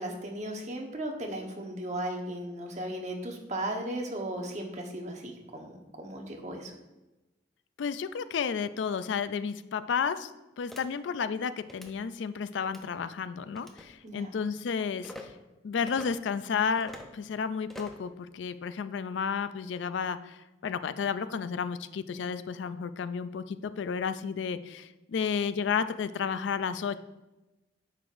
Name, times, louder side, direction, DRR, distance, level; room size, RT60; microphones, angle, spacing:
voice 1, 0.0-6.7 14.0-14.3, right 1 dB, 40° right, 1 dB, 1.1 m, -36 dB
voice 2, 7.8-10.3 10.6-15.1 15.6-27.0, left 6 dB, 75° left, 13 dB, 0.4 m, -32 dB
sound 1, 10.7-10.8 11.6-11.9 12.6-12.9 13.5-13.9 15.0-15.2 15.9-16.1 16.8-17.1 17.7-18.0, equal, ahead, 0.6 m, -45 dB
9.7 x 6.6 x 2.6 m, 1.1 s
head